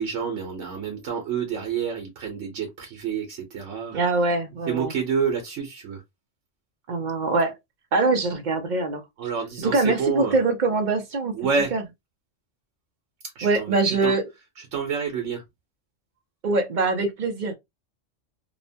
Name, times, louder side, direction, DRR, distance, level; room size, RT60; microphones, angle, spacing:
voice 1, 0.0-4.0 4.7-6.0 9.2-10.4 11.3-11.7 13.4-14.1 14.6-15.4, right 6 dB, 80° right, 1.1 m, -28 dB
voice 2, 3.9-4.9 6.9-7.6 7.9-9.0 9.6-11.3 11.7-11.8 13.4-14.2 16.4-17.5, right 3 dB, 50° right, 0.6 m, -23 dB
2.9 x 2.1 x 2.6 m
omnidirectional pair, 1.3 m